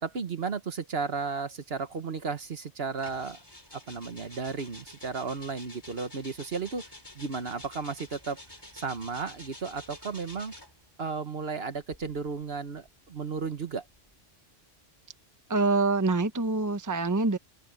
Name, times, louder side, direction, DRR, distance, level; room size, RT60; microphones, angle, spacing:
voice 1, 0.0-3.4 3.7-6.8 7.1-8.4 8.7-10.5 11.0-13.8, right 5 dB, 55° right, 1.4 m, -34 dB
sound 1, 3.0-10.9 11.7-14.2, left 1 dB, 20° left, 3.7 m, -49 dB
voice 2, 15.5-17.4, right 3 dB, 15° right, 1.0 m, -25 dB
open air
omnidirectional pair, 1.2 m